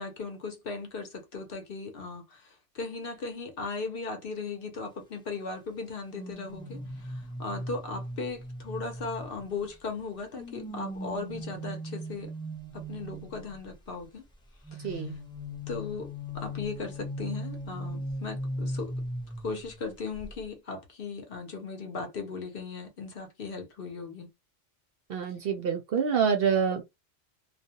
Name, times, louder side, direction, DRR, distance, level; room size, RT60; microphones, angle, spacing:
voice 1, 0.0-12.3 12.7-14.2 14.7-15.1 15.7-18.9 19.4-24.3, left 4 dB, 55° left, 0.8 m, -37 dB
sound 1, 6.1-9.7 10.3-13.6 14.6-19.9 20.1-20.4, equal, 5° left, 0.6 m, -38 dB
voice 2, 14.8-15.2 25.1-26.8, right 6 dB, 60° right, 0.7 m, -27 dB
2.4 x 2.2 x 2.7 m
omnidirectional pair, 1.2 m